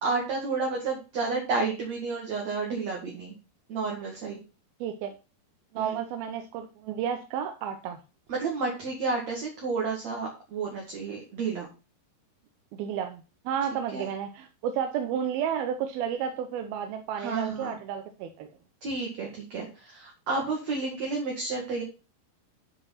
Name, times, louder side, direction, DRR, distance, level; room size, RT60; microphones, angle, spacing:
voice 1, 0.0-3.3 3.7-4.4 5.7-6.0 8.3-11.7 13.9-14.1 17.2-17.8 18.8-21.8, right 4 dB, 50° right, 2.7 m, -31 dB
voice 2, 4.8-5.2 5.7-8.0 12.7-18.5, right 8 dB, 75° right, 2.4 m, -32 dB
9.8 x 5.1 x 5.8 m
omnidirectional pair, 4.9 m